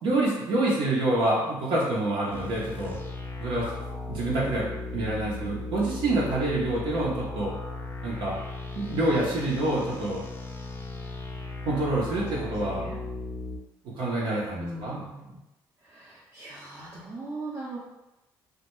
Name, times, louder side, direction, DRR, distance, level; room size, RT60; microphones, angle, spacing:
voice 1, 0.0-3.0 3.4-3.7 4.1-7.5 8.0-8.4 8.8-10.2 11.7-12.9 14.0-15.0, right 2 dB, 75° right, -6 dB, 0.7 m, -27 dB
sound 1, 2.3-13.6, left 3 dB, 25° left, 0.5 m, -37 dB
voice 2, 14.5-15.4 15.8-17.8, right 2 dB, 30° right, -7 dB, 0.6 m, -39 dB
2.2 x 2.1 x 2.9 m, 0.97 s
supercardioid pair, 70°, 9 cm